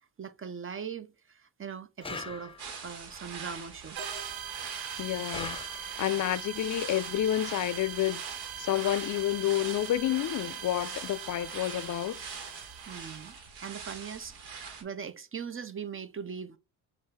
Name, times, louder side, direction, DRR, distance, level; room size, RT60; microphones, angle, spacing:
voice 1, 0.2-2.5 2.8-4.0 12.9-16.6, right 7 dB, 35° right, 0.6 m, -40 dB
sound 1, 2.0-2.9 5.3-6.2, left 4 dB, 15° left, 0.7 m, -41 dB
sound 2, 2.6-14.8, right 5 dB, 85° right, 1.4 m, -43 dB
sound 3, 4.0-13.3, right 9 dB, 70° right, 0.8 m, -42 dB
voice 2, 5.0-5.6 6.0-8.2 8.6-12.2, left 13 dB, 50° left, 0.4 m, -29 dB
5.3 x 2.5 x 3.2 m
supercardioid pair, 70°, 39 cm